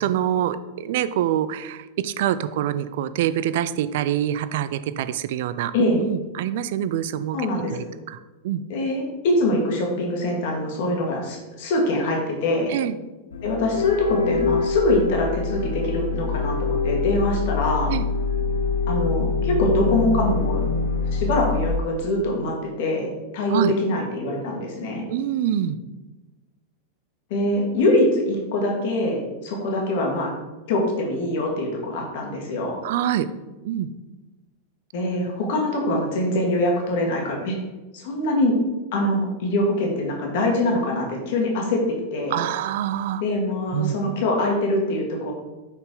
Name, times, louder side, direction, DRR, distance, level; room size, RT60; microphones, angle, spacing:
voice 1, 0.0-7.4 7.7-8.2 8.4-8.6 12.7-12.9 17.9-18.1 23.5-23.7 25.1-25.8 32.8-33.3 33.6-33.9 42.3-43.2 43.7-44.0, right 11 dB, 55° right, 13 dB, 0.3 m, -25 dB
voice 2, 7.3-7.8 8.7-12.7 13.4-17.9 18.9-20.6 21.1-25.1 27.3-30.3 30.7-32.8 34.9-37.6 37.9-38.6 38.9-42.4 43.2-45.3, left 1 dB, 50° left, 0 dB, 1.6 m, -23 dB
sound 1, 13.3-21.7, left 4 dB, 65° left, 0.6 m, -25 dB
5.8 x 5.6 x 3.9 m, 1.1 s
figure-of-eight pair, 90°, 0 cm